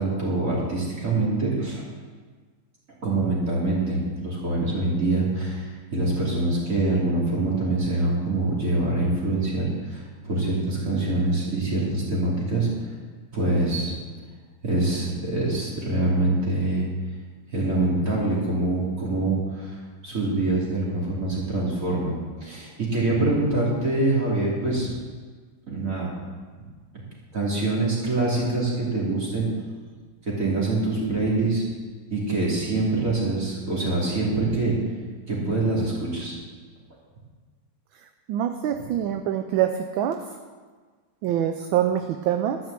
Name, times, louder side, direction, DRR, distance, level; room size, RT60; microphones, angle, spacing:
voice 1, 0.0-1.8 3.0-12.7 13.3-13.9 14.6-16.9 17.5-19.7 20.0-22.1 22.4-24.9 25.7-26.1 26.9-27.0 27.3-29.5 30.4-31.6 32.1-34.7 35.3-36.4, right 2 dB, 35° right, -5 dB, 3.3 m, -25 dB
voice 2, 38.3-40.2 41.2-42.6, right 10 dB, 75° right, 7 dB, 1.3 m, -25 dB
12.5 x 6.1 x 7.5 m, 1.5 s
omnidirectional pair, 2.4 m